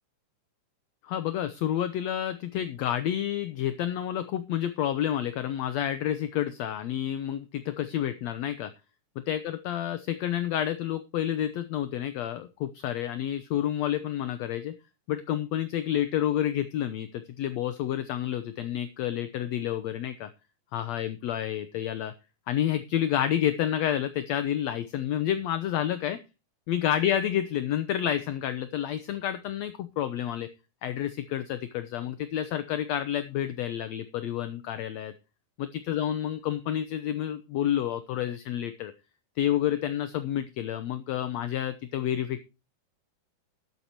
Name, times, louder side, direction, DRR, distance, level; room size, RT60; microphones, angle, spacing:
voice 1, 1.0-8.7 9.3-14.7 15.1-20.3 20.7-22.1 22.5-26.2 26.7-30.5 30.8-35.1 35.6-38.9 39.4-42.4, left 11 dB, 70° left, 11 dB, 1.8 m, -29 dB
14.0 x 11.5 x 2.9 m, 0.29 s
omnidirectional pair, 3.7 m